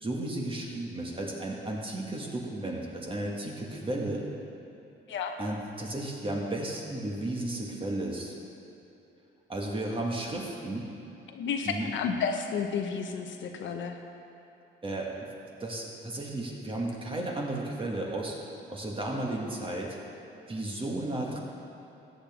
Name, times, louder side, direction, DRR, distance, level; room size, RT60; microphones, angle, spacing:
voice 1, 0.0-4.3 5.4-8.3 9.5-10.9 11.6-11.9 14.8-15.3 15.6-18.4 18.7-20.0 20.5-21.4, right 1 dB, 25° right, -1 dB, 1.9 m, -34 dB
voice 2, 11.3-14.0, left 6 dB, 70° left, 4 dB, 0.9 m, -31 dB
14.5 x 8.9 x 3.7 m, 3.0 s
cardioid pair, 90°, 20 cm